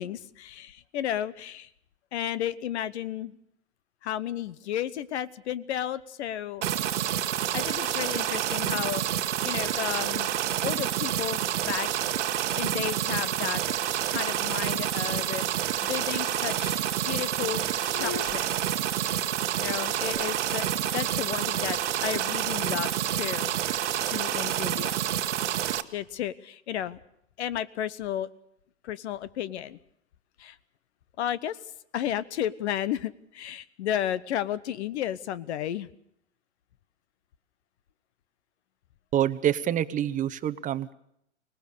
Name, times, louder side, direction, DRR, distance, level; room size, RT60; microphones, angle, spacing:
voice 1, 0.0-1.7 2.1-3.3 4.0-6.6 7.5-10.3 10.6-12.1 12.5-13.8 14.1-18.6 19.6-25.0 25.9-27.0 27.4-28.3 28.8-29.8 30.4-30.6 31.2-31.6 31.9-35.9, left 11 dB, 65° left, 18 dB, 1.1 m, -33 dB
sound 1, 6.6-25.8, right 11 dB, 75° right, 1.3 m, -28 dB
sound 2, 16.2-16.8 17.1-17.6 17.9-19.1 20.1-21.3, left 8 dB, 40° left, 1.3 m, -44 dB
voice 2, 39.1-40.9, right 11 dB, 20° right, 12 dB, 0.8 m, -26 dB
24.5 x 19.0 x 6.7 m, 0.74 s
hypercardioid pair, 115°, 37 cm